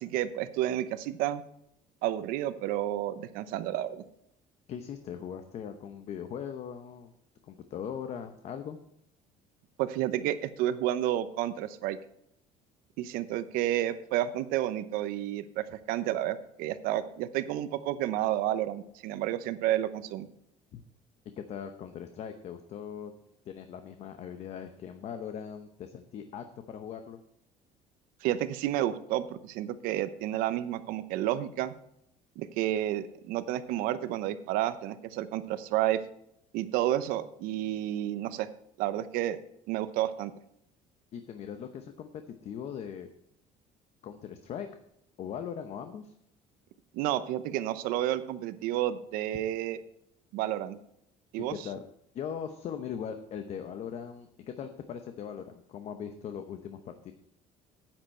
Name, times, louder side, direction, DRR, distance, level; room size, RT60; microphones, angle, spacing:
voice 1, 0.0-1.4 2.0-4.0 9.8-12.0 13.0-20.3 28.2-31.7 32.4-36.0 36.5-38.5 38.8-39.4 39.7-40.3 46.9-49.8 50.3-50.8 51.3-51.6, right 13 dB, 85° right, 13 dB, 0.8 m, -30 dB
voice 2, 4.7-7.1 7.4-8.8 20.7-20.8 21.4-23.1 23.5-27.2 41.1-43.1 44.0-44.7 45.2-46.1 51.5-51.8 52.1-57.1, left 8 dB, 50° left, 8 dB, 0.8 m, -40 dB
10.0 x 9.0 x 4.4 m, 0.74 s
cardioid pair, 145°, 14 cm